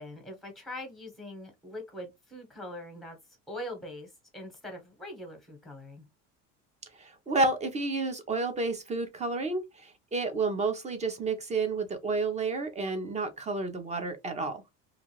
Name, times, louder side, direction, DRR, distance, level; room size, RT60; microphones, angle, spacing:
voice 1, 0.0-3.2 3.5-6.1, left 1 dB, ahead, 1.1 m, -42 dB
voice 2, 7.0-14.6, right 3 dB, 20° right, 0.6 m, -30 dB
2.4 x 2.4 x 3.0 m
cardioid pair, 140°, 33 cm